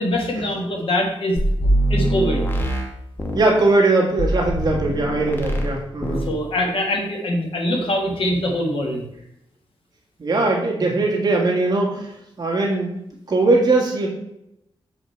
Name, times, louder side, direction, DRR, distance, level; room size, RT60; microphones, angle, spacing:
voice 1, 0.0-1.4 1.9-2.5 6.1-9.0, left 1 dB, 65° left, 1 dB, 1.6 m, -23 dB
sound 1, 1.4-3.5 4.2-5.7 6.0-6.3, right 1 dB, 20° left, 1.0 m, -22 dB
voice 2, 3.3-6.3 10.2-12.1 12.4-13.0 13.3-14.1, right 2 dB, 45° right, -2 dB, 1.8 m, -20 dB
6.4 x 5.0 x 4.5 m, 0.81 s
wide cardioid pair, 160°, 10 cm